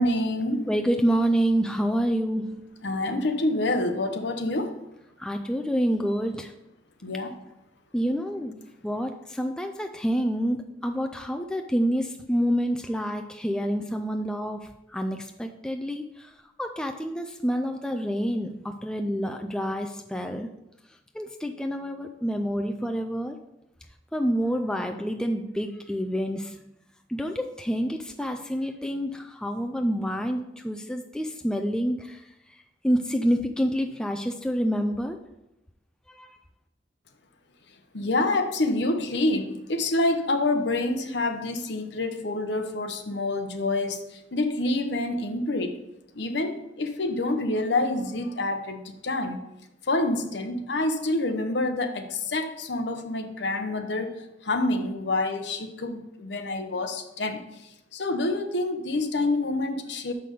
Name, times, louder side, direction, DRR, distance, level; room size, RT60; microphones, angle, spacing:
voice 1, 0.0-0.7 2.8-4.8 7.0-7.4 37.9-45.8 46.1-49.5 49.8-60.1, left 2 dB, 60° left, 6 dB, 0.8 m, -27 dB
voice 2, 0.7-2.7 5.2-6.5 7.9-16.3 16.6-20.5 21.1-23.4 24.1-26.6 27.1-32.2 32.8-35.2 36.2-36.3, equal, 5° left, 4 dB, 0.3 m, -28 dB
6.6 x 5.8 x 5.1 m, 0.90 s
head